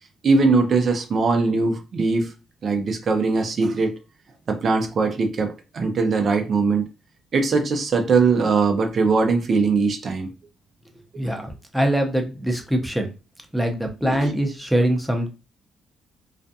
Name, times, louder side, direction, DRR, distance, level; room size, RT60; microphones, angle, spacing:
voice 1, 0.2-2.3 2.6-4.0 4.5-6.8 7.3-10.3 14.0-14.3, right 4 dB, 50° right, 0.6 m, -21 dB
voice 2, 11.2-13.1 13.5-15.3, right 1 dB, 5° right, 0.7 m, -23 dB
2.4 x 2.3 x 2.6 m
cardioid pair, 90°, 0 cm